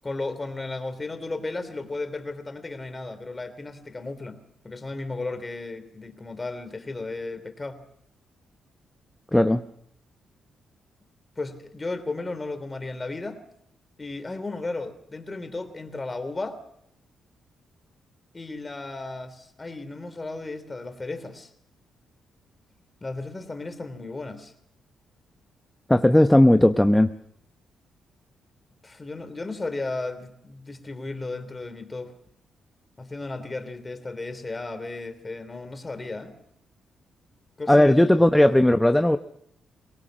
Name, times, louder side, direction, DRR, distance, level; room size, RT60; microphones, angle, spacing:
voice 1, 0.0-7.8 11.4-13.4 14.0-16.6 18.3-21.5 23.0-24.5 28.8-32.1 33.0-36.4 37.6-38.3, left 3 dB, 25° left, 9 dB, 3.2 m, -34 dB
voice 2, 9.3-9.6 25.9-27.1 37.7-39.2, left 1 dB, 10° left, 8 dB, 0.9 m, -17 dB
22.5 x 18.5 x 6.4 m, 0.71 s
cardioid pair, 70°, 0 cm